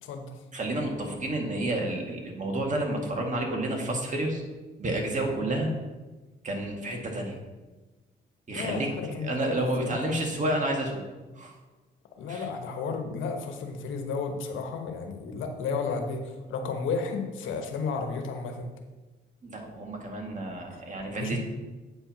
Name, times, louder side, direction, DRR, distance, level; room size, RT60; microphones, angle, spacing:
voice 1, 0.0-0.3 8.5-10.2 12.2-18.7 20.7-20.8 21.1-21.4, left 4 dB, 80° left, 5 dB, 1.1 m, -33 dB
voice 2, 0.5-4.4 4.8-5.7 6.4-7.3 8.5-8.9 9.2-11.0 11.4-11.5 12.3-12.5 19.4-21.4, right 1 dB, 40° right, 1 dB, 1.9 m, -30 dB
8.5 x 4.5 x 5.8 m, 1.2 s
cardioid pair, 90°, 20 cm